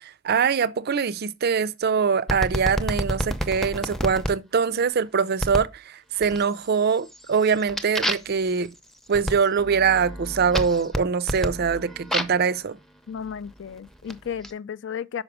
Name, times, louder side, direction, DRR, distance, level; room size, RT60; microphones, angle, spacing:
voice 1, 0.0-8.7 9.1-12.8, right 6 dB, 45° right, 0.4 m, -23 dB
sound 1, 2.3-4.3 5.4-5.8 6.2-6.7 7.1-12.5 13.3-14.5, equal, ahead, 0.6 m, -30 dB
voice 2, 13.1-15.2, left 7 dB, 55° left, 0.4 m, -34 dB
6.0 x 5.2 x 4.8 m
head